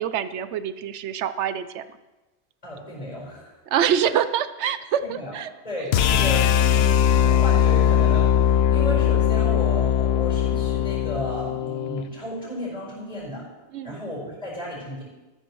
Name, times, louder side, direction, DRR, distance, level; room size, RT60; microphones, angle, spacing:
voice 1, 0.0-1.8 3.7-5.5 13.7-14.0, right 9 dB, 85° right, 13 dB, 0.9 m, -25 dB
voice 2, 2.6-3.6 5.0-5.4 5.6-6.5 6.7-13.4 13.8-15.0, equal, 35° left, -4 dB, 4.7 m, -34 dB
sound 1, 5.9-12.1, left 9 dB, 70° left, 0.8 m, -20 dB
13.5 x 12.5 x 3.1 m, 1.1 s
omnidirectional pair, 1.2 m